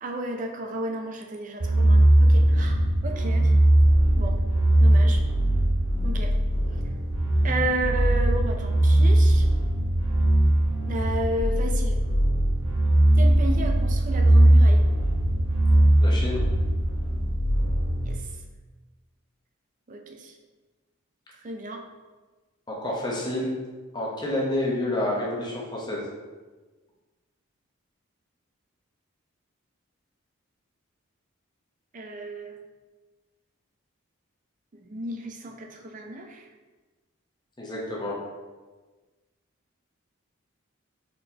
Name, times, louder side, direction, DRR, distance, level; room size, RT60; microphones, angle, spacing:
voice 1, 0.0-3.5 4.2-4.4 4.8-5.2 6.0-6.3 6.7-6.8 7.4-9.5 10.9-12.0 13.2-14.9 18.0-18.3 19.9-20.3 21.4-21.8 31.9-32.6 34.7-36.5, right 1 dB, 40° right, 3 dB, 0.4 m, -33 dB
sound 1, 1.6-18.1, right 1 dB, 85° right, 0.9 m, -20 dB
voice 2, 16.0-16.4 22.7-23.6 23.9-26.1 37.6-38.2, left 1 dB, 20° left, -3 dB, 0.8 m, -29 dB
4.2 x 3.7 x 2.8 m, 1.3 s
head